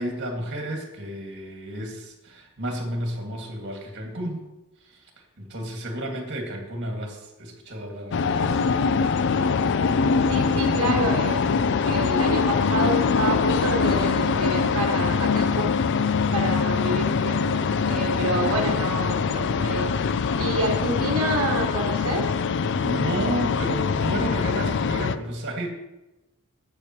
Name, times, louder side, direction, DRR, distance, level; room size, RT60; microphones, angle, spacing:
voice 1, 0.0-4.4 4.8-5.0 5.4-8.6 18.2-18.4 22.8-25.7, right 1 dB, 50° right, 2 dB, 1.9 m, -32 dB
sound 1, 8.1-25.2, left 5 dB, 55° left, 0.4 m, -23 dB
voice 2, 10.3-15.7 16.3-17.6 17.9-19.9 20.4-22.3, right 2 dB, 75° right, 1 dB, 1.2 m, -28 dB
18.5 x 6.7 x 2.9 m, 1.0 s
head